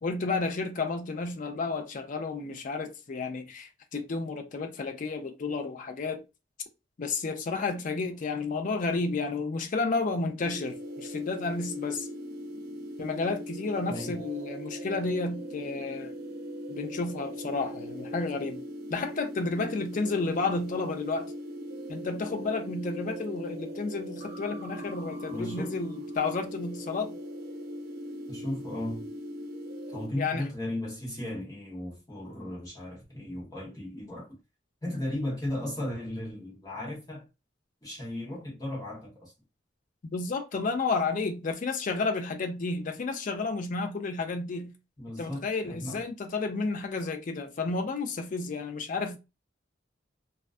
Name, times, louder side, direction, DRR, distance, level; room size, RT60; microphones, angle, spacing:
voice 1, 0.0-6.2 7.0-12.1 13.0-16.1 16.7-18.6 18.9-21.3 21.9-27.2 30.2-30.5 40.1-44.7 45.2-49.2, left 3 dB, 40° left, 0.4 m, -31 dB
sound 1, 10.4-30.1, equal, 55° right, 0.4 m, -40 dB
voice 2, 13.9-14.2 25.3-25.8 28.3-29.1 29.9-34.4 34.8-37.3 37.8-39.3 45.0-46.0, left 1 dB, 20° left, 1.0 m, -36 dB
2.3 x 2.2 x 2.4 m
head